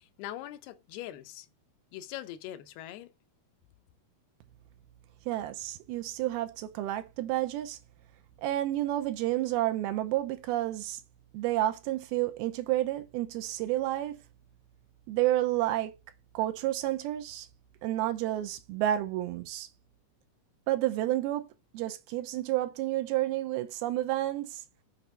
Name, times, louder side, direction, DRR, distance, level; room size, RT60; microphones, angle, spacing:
voice 1, 0.0-1.5 1.9-3.1, left 13 dB, 85° left, 2.7 m, -42 dB
voice 2, 5.3-7.8 8.4-11.0 11.3-14.2 15.1-15.9 16.3-17.5 17.8-19.7 20.7-21.5 21.7-24.6, right 14 dB, 90° right, 2.6 m, -30 dB
7.0 x 4.3 x 5.3 m
omnidirectional pair, 4.5 m